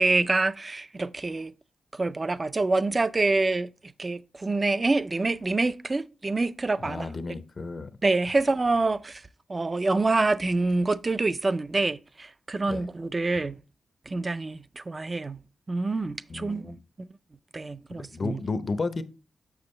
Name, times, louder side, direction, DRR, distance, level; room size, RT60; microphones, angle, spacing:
voice 1, 0.0-1.5 1.9-3.7 4.0-7.1 8.0-9.2 9.5-13.6 14.1-15.4 15.7-17.1 17.5-18.4, right 3 dB, 30° right, 0.4 m, -26 dB
voice 2, 6.8-7.9 12.7-12.9 16.3-16.8 17.9-19.0, left 3 dB, 40° left, 0.6 m, -32 dB
7.0 x 6.3 x 3.2 m
wide cardioid pair, 100°, 0 cm